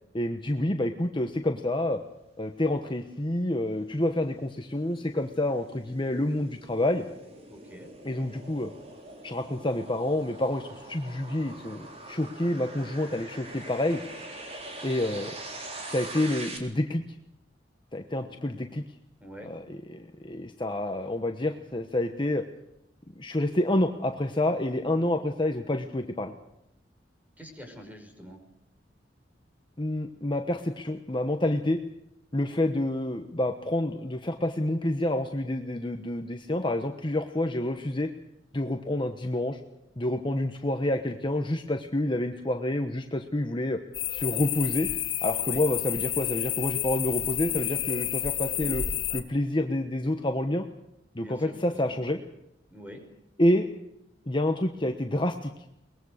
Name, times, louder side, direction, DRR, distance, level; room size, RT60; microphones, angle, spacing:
voice 1, 0.1-2.0 2.4-7.1 8.0-8.7 9.2-14.0 14.8-15.3 15.9-17.0 17.9-18.8 19.4-22.4 23.2-26.3 29.8-31.8 32.3-38.1 38.5-39.6 40.0-43.8 44.1-44.9 45.2-48.8 49.1-50.7 51.1-52.2 53.4-53.7 54.3-55.5, left 1 dB, 25° left, 5 dB, 1.2 m, -28 dB
sound 1, 3.4-16.6, right 2 dB, 35° right, 4.0 m, -44 dB
voice 2, 7.5-7.9 18.2-18.3 19.2-19.5 27.4-28.4 45.4-45.6 51.2-51.8 52.7-53.0, equal, 10° right, 3 dB, 5.4 m, -46 dB
sound 2, 43.9-49.2, left 12 dB, 85° left, 2.2 m, -30 dB
22.5 x 20.5 x 6.6 m, 0.83 s
head